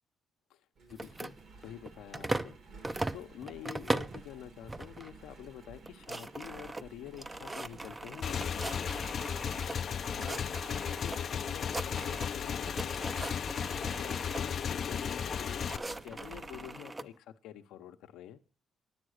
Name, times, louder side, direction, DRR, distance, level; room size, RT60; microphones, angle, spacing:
Engine, 0.7-16.8, right 3 dB, 65° right, 2.6 m, -53 dB
voice 1, 0.9-2.6 2.8-9.0 10.2-10.4 10.7-18.4, left 11 dB, 90° left, 8 dB, 0.8 m, -48 dB
sound 1, 0.9-2.6 2.8-4.2 4.7-5.1 5.4-5.5 5.8-9.8 10.1-11.2 11.5-12.4 12.7-14.4 15.2-17.1, right 2 dB, 20° right, 0.5 m, -39 dB
Motorcycle / Engine, 8.2-15.8, left 7 dB, 55° left, 0.4 m, -35 dB
9.8 x 8.8 x 6.5 m, 0.41 s
cardioid pair, 90°, 0 cm